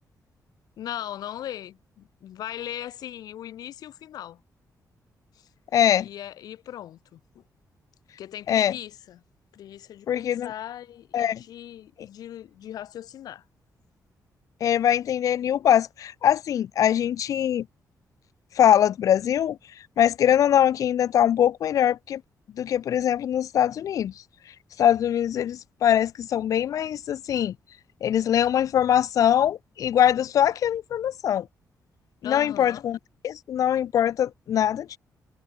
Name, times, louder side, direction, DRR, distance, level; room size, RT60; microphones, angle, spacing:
voice 1, 0.8-4.4 5.4-5.5 6.0-7.4 8.2-9.2 9.5-13.4 32.2-32.8, left 11 dB, 85° left, 2.2 m, -39 dB
voice 2, 5.7-6.1 8.5-8.7 10.1-10.5 11.1-11.4 14.6-17.7 18.6-19.6 20.0-22.2 22.6-24.1 24.8-27.6 28.0-31.5 32.2-33.0 33.2-35.0, left 10 dB, 60° left, 0.7 m, -22 dB
wide cardioid pair, 165°, 6 cm